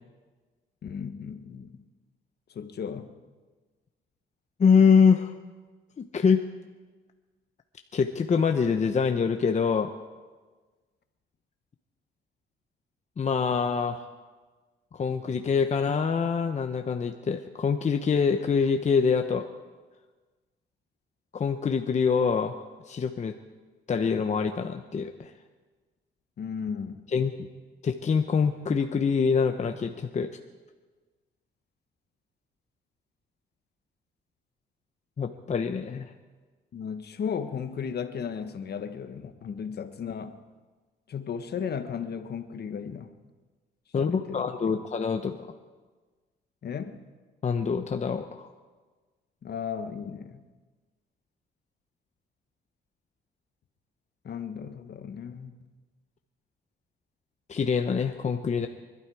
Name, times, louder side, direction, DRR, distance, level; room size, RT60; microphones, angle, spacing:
voice 1, 0.8-1.8 2.5-3.1 26.4-27.0 36.7-40.4 41.1-43.1 44.0-44.8 46.6-47.0 49.4-50.4 54.2-55.5, left 7 dB, 55° left, 8 dB, 1.4 m, -35 dB
voice 2, 4.6-5.3 6.0-6.4 7.9-9.9 13.2-14.0 14.9-19.5 21.3-23.3 23.9-25.3 27.1-27.3 27.8-30.3 35.2-36.1 43.9-45.4 47.4-48.5 57.5-58.7, left 6 dB, 35° left, 6 dB, 0.9 m, -25 dB
24.5 x 12.0 x 4.8 m, 1.3 s
cardioid pair, 90°, 20 cm